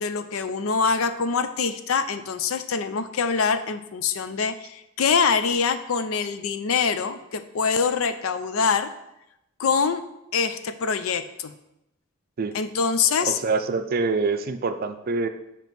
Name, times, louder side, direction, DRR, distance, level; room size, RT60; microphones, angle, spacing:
voice 1, 0.0-8.9 9.6-10.0 10.3-11.5 12.5-13.4, left 5 dB, 85° left, 11 dB, 0.5 m, -24 dB
voice 2, 13.2-15.3, right 4 dB, 45° right, 9 dB, 0.4 m, -25 dB
7.0 x 3.0 x 5.9 m, 0.86 s
head